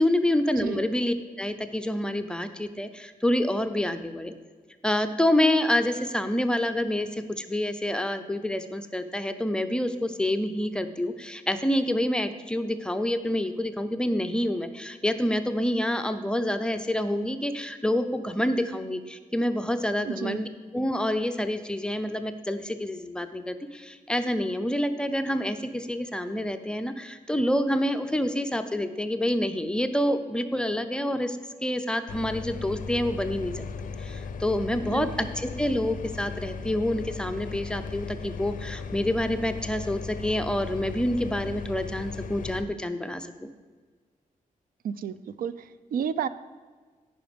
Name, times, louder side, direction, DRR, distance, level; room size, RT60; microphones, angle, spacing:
voice 1, 0.0-4.3 4.8-20.5 20.7-33.6 34.0-43.3, left 1 dB, 5° left, 8 dB, 0.4 m, -27 dB
voice 2, 20.0-20.4 34.9-35.1 44.8-46.3, right 8 dB, 80° right, 15 dB, 0.4 m, -31 dB
sound 1, 32.1-42.7, left 5 dB, 65° left, 0.4 m, -37 dB
10.0 x 4.8 x 5.1 m, 1.5 s
wide cardioid pair, 175°, 15 cm